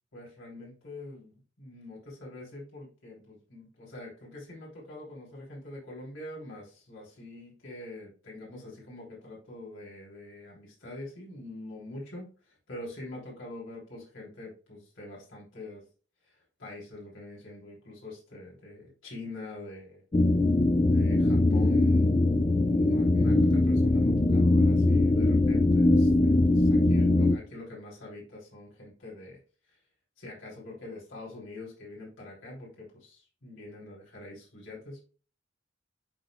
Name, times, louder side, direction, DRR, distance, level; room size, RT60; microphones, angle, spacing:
voice 1, 0.1-15.8 16.2-20.0 20.9-29.4 29.7-29.8 30.2-35.0, left 2 dB, 85° left, -5 dB, 3.4 m, -45 dB
sound 1, 20.1-27.4, left 2 dB, 25° left, 0.4 m, -22 dB
11.5 x 4.1 x 2.3 m, 0.37 s
head